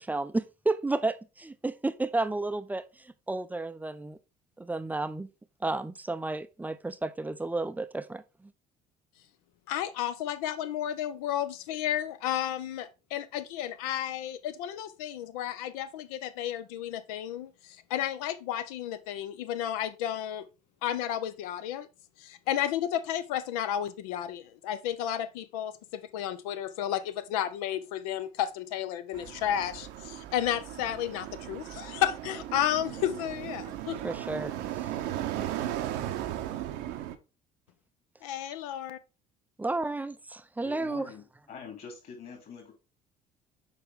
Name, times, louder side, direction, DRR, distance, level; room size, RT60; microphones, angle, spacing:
voice 1, 0.0-4.2 4.6-5.3 5.6-8.2 34.0-34.9 39.6-40.1 40.6-41.1, right 2 dB, 10° right, 0.5 m, -32 dB
voice 2, 9.7-20.5 20.8-21.9 22.2-34.0 38.2-39.0, left 11 dB, 60° left, 0.6 m, -32 dB
sound 1, 29.1-37.2, right 12 dB, 55° right, 0.8 m, -36 dB
voice 3, 40.6-42.7, left 5 dB, 45° left, 3.2 m, -45 dB
6.7 x 5.3 x 3.5 m
figure-of-eight pair, 55°, 21 cm